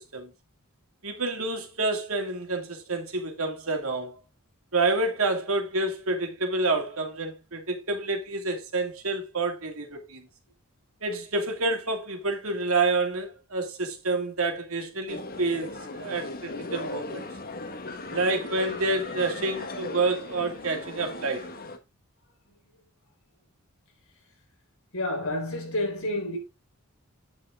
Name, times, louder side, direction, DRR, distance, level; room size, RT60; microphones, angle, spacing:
voice 1, 1.0-4.1 4.7-10.3 11.0-17.3 18.1-21.5, right 3 dB, 70° right, 2.5 m, -28 dB
sound 1, 15.1-21.8, left 2 dB, 45° left, 1.3 m, -37 dB
voice 2, 24.9-26.4, left 1 dB, 70° left, 4.1 m, -30 dB
9.5 x 6.5 x 3.7 m
head